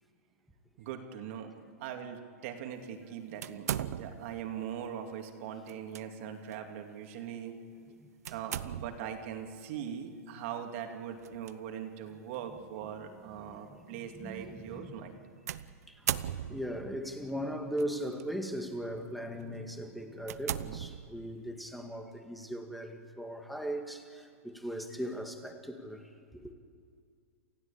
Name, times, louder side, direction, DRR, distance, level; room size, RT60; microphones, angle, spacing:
voice 1, 0.8-7.6 8.3-15.1, right 8 dB, 55° right, 2.8 m, -41 dB
sound 1, 3.4-4.4 5.7-6.0 6.5-6.6 8.2-9.1 11.2-11.5 12.3-12.4 15.5-16.9 17.8-18.2 18.8-19.0 19.5-19.6 20.2-21.4, right 10 dB, 75° right, 0.9 m, -37 dB
voice 2, 12.9-14.9 15.9-26.5, equal, ahead, 2.0 m, -39 dB
28.5 x 16.0 x 8.7 m
hypercardioid pair, 145°, 8 cm